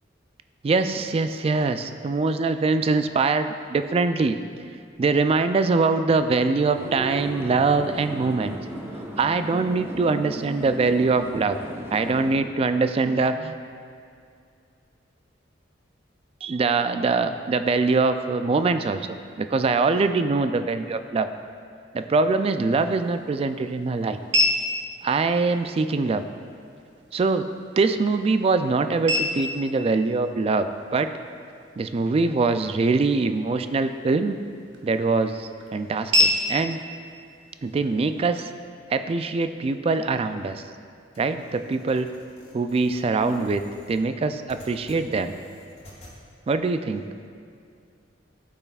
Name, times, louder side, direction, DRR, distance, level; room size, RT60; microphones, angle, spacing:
voice 1, 0.6-4.4 5.0-8.6 9.2-11.6 11.9-13.6 16.4-19.1 19.5-21.3 21.9-24.2 25.0-26.2 27.1-27.5 27.8-31.1 31.8-34.4 34.8-36.8 37.6-38.5 38.9-40.6 41.2-42.1 42.5-45.4 46.5-47.0, right 3 dB, 30° right, 9 dB, 0.3 m, -23 dB
sound 1, 6.7-12.4, right 1 dB, 15° right, 0.7 m, -36 dB
sound 2, 22.6-38.6, left 2 dB, 70° right, 0.9 m, -31 dB
sound 3, 41.1-46.2, left 1 dB, 35° left, 1.8 m, -50 dB
13.0 x 5.6 x 2.4 m, 2.3 s
head